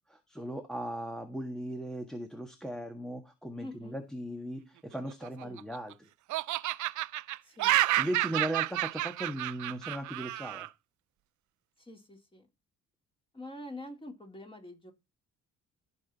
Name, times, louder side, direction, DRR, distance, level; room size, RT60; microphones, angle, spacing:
voice 1, 0.1-6.1 8.0-10.7, right 1 dB, ahead, 1.6 m, -38 dB
voice 2, 3.6-4.0 5.4-5.6 7.4-7.7 11.8-12.5 13.3-14.9, left 1 dB, 20° left, 3.8 m, -45 dB
Laughter, 5.1-5.9 6.3-10.7, right 16 dB, 75° right, 0.5 m, -30 dB
14.5 x 5.9 x 4.1 m
cardioid pair, 90°, 30 cm